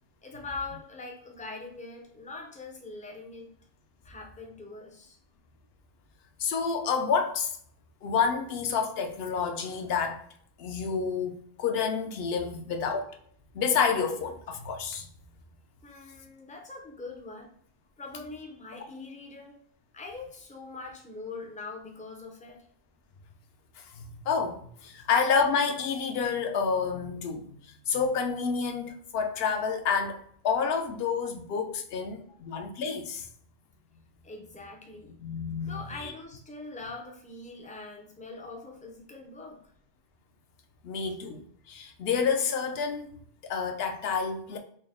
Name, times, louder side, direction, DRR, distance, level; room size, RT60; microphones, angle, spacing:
voice 1, 0.2-3.5 4.0-5.2 15.8-17.5 18.0-19.6 19.9-22.7 24.9-25.0 32.3-32.4 34.2-35.1 35.6-39.6 41.0-41.1, left 3 dB, 15° left, 0.3 m, -42 dB
voice 2, 6.4-7.5 8.0-10.2 10.6-13.1 13.5-15.1 23.8-33.3 35.2-36.1 40.8-43.2 43.4-44.6, left 6 dB, 70° left, 0.8 m, -29 dB
3.9 x 2.0 x 3.5 m
omnidirectional pair, 1.1 m